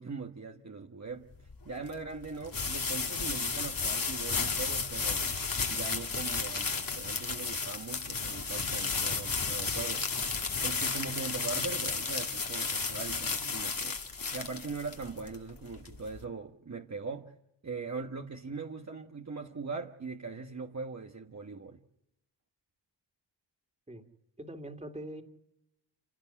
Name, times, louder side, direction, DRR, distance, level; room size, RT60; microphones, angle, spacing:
voice 1, 0.0-5.4 5.7-10.1 10.6-14.0 14.3-17.3 17.6-21.8, right 4 dB, 40° right, 1.4 m, -40 dB
sound 1, 1.3-16.2, left 4 dB, 50° left, 2.4 m, -33 dB
voice 2, 24.4-25.2, right 1 dB, 15° right, 2.5 m, -42 dB
28.5 x 17.0 x 10.0 m
wide cardioid pair, 135°, 44 cm